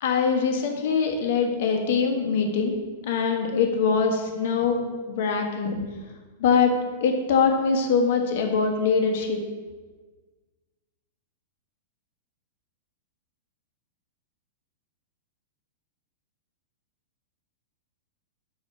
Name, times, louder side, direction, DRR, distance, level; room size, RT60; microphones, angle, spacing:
voice 1, 0.0-2.8 3.0-4.8 5.1-5.8 6.4-6.7 7.0-9.4, left 5 dB, 60° left, 4 dB, 1.4 m, -23 dB
6.3 x 5.1 x 6.8 m, 1.4 s
hypercardioid pair, 105°, 0 cm